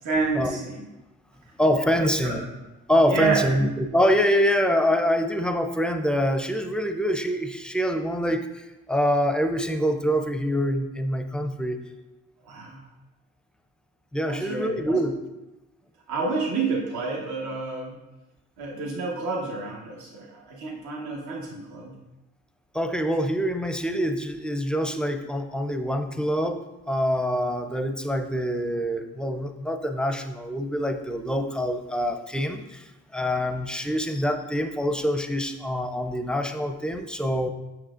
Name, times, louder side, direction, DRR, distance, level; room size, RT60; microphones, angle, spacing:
voice 1, 0.0-0.9 2.0-2.4 3.1-3.5 12.4-12.8 14.3-15.0 16.1-17.9 18.6-21.9, right 4 dB, 75° right, -2 dB, 1.3 m, -29 dB
voice 2, 1.6-2.4 2.9-11.8 14.1-15.2 22.7-37.5, equal, 5° left, 7 dB, 0.5 m, -25 dB
7.6 x 6.1 x 2.5 m, 1.0 s
cardioid pair, 90°, 30 cm